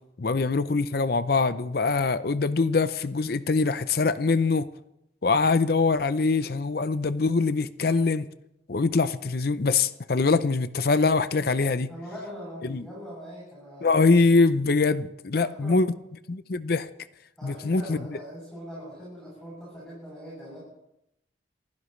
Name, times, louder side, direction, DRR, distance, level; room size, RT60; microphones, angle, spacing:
voice 1, 0.2-4.7 5.2-8.3 8.7-11.9 12.6-12.8 13.8-15.9 16.3-16.9 17.4-18.0, left 4 dB, 55° left, 0.6 m, -23 dB
voice 2, 11.9-13.9 15.3-15.8 17.4-20.6, equal, 5° left, 7.9 m, -41 dB
28.5 x 16.0 x 3.2 m
head